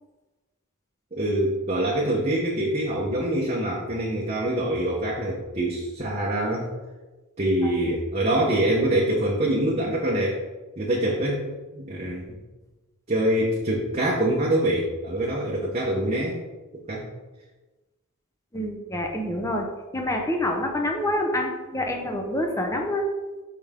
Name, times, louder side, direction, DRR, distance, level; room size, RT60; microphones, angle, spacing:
voice 1, 1.1-6.7 7.4-10.4 10.8-12.4 13.1-16.4 16.9-17.1, right 1 dB, 30° right, -4 dB, 0.8 m, -25 dB
voice 2, 18.5-19.7 19.9-23.1, left 1 dB, 15° left, 2 dB, 0.7 m, -27 dB
5.5 x 5.4 x 3.6 m, 1.2 s
head